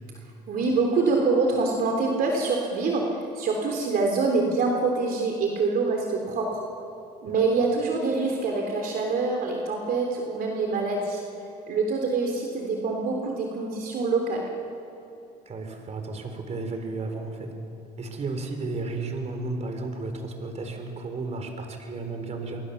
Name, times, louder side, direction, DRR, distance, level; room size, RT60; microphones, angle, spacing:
voice 1, 0.5-3.0 3.3-6.6 7.2-11.2 11.7-14.4, right 3 dB, 60° right, 1 dB, 3.4 m, -25 dB
voice 2, 15.5-17.5 18.0-22.6, right 3 dB, 40° right, 5 dB, 4.3 m, -33 dB
27.0 x 24.0 x 7.1 m, 2.8 s
cardioid pair, 110°, 17 cm